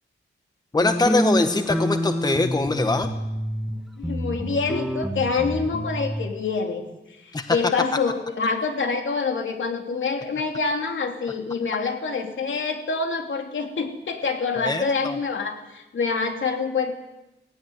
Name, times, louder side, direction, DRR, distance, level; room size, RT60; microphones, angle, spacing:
voice 1, 0.7-3.1 7.3-7.6 14.6-15.2, left 3 dB, 20° left, 8 dB, 1.2 m, -23 dB
sound 1, 0.8-3.7 4.0-6.2, equal, ahead, 1.5 m, -27 dB
voice 2, 4.0-6.8 7.2-16.9, left 4 dB, 75° left, 4 dB, 3.3 m, -26 dB
18.5 x 17.0 x 9.5 m, 0.96 s
wide cardioid pair, 160°, 20 cm